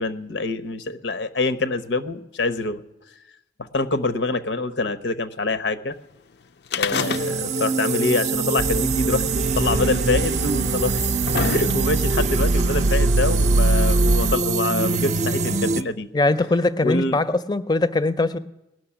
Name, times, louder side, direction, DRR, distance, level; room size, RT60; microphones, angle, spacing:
voice 1, 0.0-2.8 3.6-5.9 6.7-9.2 9.5-11.0 11.4-16.1 16.8-17.3, left 2 dB, 85° left, 11 dB, 1.0 m, -25 dB
sound 1, 6.7-7.7 8.0-8.1 9.0-9.1 10.0-10.1 10.8-12.1 13.0-13.1, left 6 dB, 65° left, 0.5 m, -27 dB
sound 2, 6.9-15.8, right 4 dB, 40° right, 0.5 m, -24 dB
sound 3, 8.6-14.3, right 2 dB, 85° right, 0.5 m, -23 dB
voice 2, 16.1-18.4, left 2 dB, 20° left, 13 dB, 0.5 m, -21 dB
19.0 x 6.5 x 10.0 m, 0.92 s
head